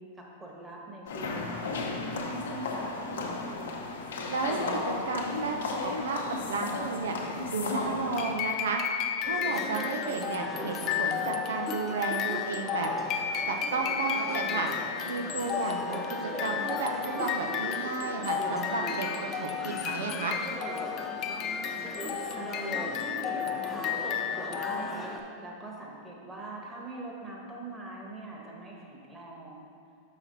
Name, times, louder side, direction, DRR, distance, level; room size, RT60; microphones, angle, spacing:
voice 1, 0.1-3.0 21.9-29.7, right 2 dB, 15° right, -3 dB, 1.4 m, -43 dB
sound 1, 1.1-8.3, left 3 dB, 80° left, 1.0 m, -34 dB
voice 2, 4.3-7.2 7.5-12.9 13.5-14.7 15.1-19.1 19.3-20.4, right 4 dB, 80° right, 2 dB, 0.6 m, -33 dB
sound 2, 8.2-25.2, left 8 dB, 40° left, 0.5 m, -33 dB
sound 3, 9.2-25.2, left 1 dB, 10° left, 0.8 m, -38 dB
5.9 x 5.8 x 4.1 m, 2.3 s
hypercardioid pair, 110°, 0 cm